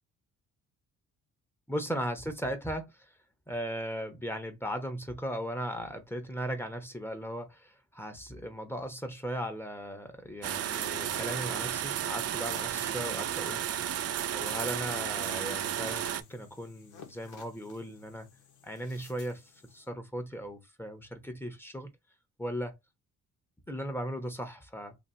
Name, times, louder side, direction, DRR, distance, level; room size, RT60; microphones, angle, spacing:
voice 1, 1.7-3.1 3.5-13.9 14.3-18.3 18.6-21.9 22.4-22.8 23.7-25.0, equal, 5° left, 1.1 m, -37 dB
sound 1, 10.4-16.2, right 10 dB, 55° right, 0.5 m, -33 dB
sound 2, 12.8-19.9, left 6 dB, 80° left, 1.2 m, -56 dB
2.9 x 2.9 x 4.0 m
cardioid pair, 90°, 30 cm